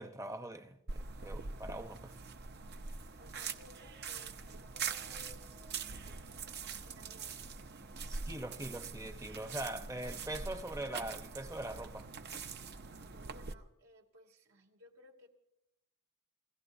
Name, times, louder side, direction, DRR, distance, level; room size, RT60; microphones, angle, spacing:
voice 1, 0.0-2.1 8.0-12.1, right 1 dB, 15° right, 0.8 m, -42 dB
sound 1, 0.9-13.5, right 5 dB, 50° right, 0.7 m, -43 dB
voice 2, 3.2-6.6 6.8-7.5 13.0-15.3, left 1 dB, 75° right, 2.7 m, -60 dB
28.5 x 16.0 x 2.7 m
head